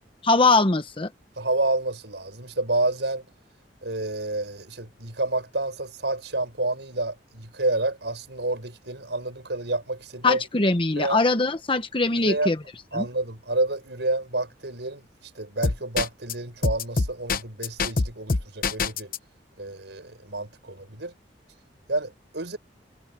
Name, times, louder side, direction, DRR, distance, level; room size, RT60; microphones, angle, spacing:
voice 1, 0.2-1.1 10.2-12.6 12.9-13.1, left 3 dB, 30° left, 1.1 m, -21 dB
voice 2, 1.4-3.2 3.8-10.4 11.0-11.2 12.1-12.5 12.9-15.0 15.4-19.1 19.6-21.1 21.9-22.6, right 2 dB, 75° right, 5.7 m, -29 dB
sound 1, 15.6-16.3 16.6-19.2, left 3 dB, 55° left, 0.9 m, -24 dB
head